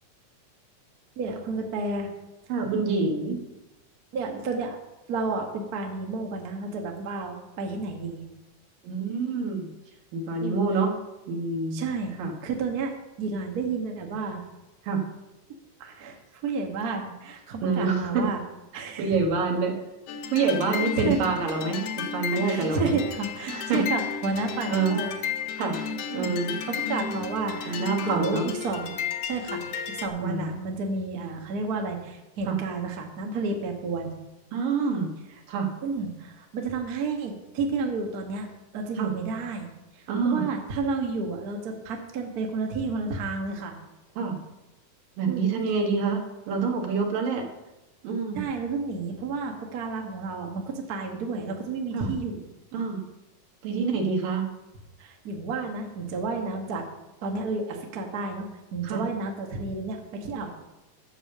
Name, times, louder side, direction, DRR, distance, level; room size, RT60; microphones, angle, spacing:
voice 1, 1.2-2.1 4.1-4.8 5.1-8.2 10.4-10.6 11.7-12.1 12.4-14.4 15.8-18.4 18.7-19.2 20.7-21.2 22.3-25.1 25.7-25.8 26.1-28.9 29.2-29.6 29.9-34.1 35.8-38.5 38.7-39.7 40.0-43.7 45.3-45.5 48.3-52.5 53.8-53.9 55.0-56.8 57.2-60.5, right 3 dB, 60° right, 2 dB, 0.9 m, -31 dB
voice 2, 2.5-3.4 8.8-9.7 10.1-10.9 11.3-11.8 12.2-12.3 14.8-15.0 17.6-18.2 19.0-19.7 20.3-22.9 23.5-23.8 24.7-25.0 25.6-25.8 26.1-26.6 27.7-28.5 30.2-30.5 32.5-32.6 34.5-35.1 35.5-35.7 39.0-39.1 40.1-40.4 44.2-44.4 45.2-47.5 48.0-48.4 51.9-52.1 52.7-53.0 53.6-54.4 58.8-59.0, right 4 dB, 85° right, 2 dB, 3.2 m, -26 dB
sound 1, 20.1-30.1, left 7 dB, 80° left, 1.3 m, -33 dB
9.7 x 7.0 x 6.6 m, 1.0 s
omnidirectional pair, 3.8 m